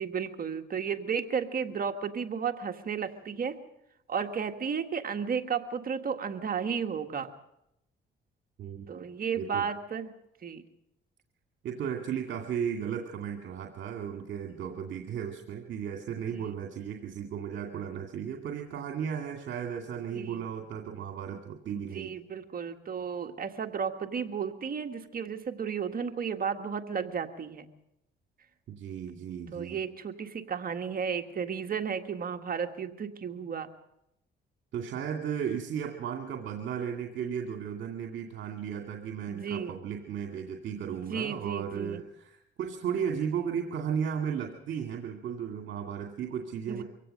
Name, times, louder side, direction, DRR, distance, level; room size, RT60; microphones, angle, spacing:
voice 1, 0.0-3.5 4.1-7.3 8.9-10.1 10.4-10.6 16.3-16.5 20.1-20.4 21.8-27.7 29.5-33.7 39.3-39.8 40.9-42.0 46.7-46.8, right 6 dB, 45° right, 6 dB, 1.7 m, -33 dB
voice 2, 8.6-9.0 9.4-9.7 11.6-22.1 28.7-29.8 34.7-46.8, right 8 dB, 70° right, 3 dB, 2.4 m, -35 dB
24.5 x 17.0 x 6.7 m, 0.80 s
cardioid pair, 90°, 20 cm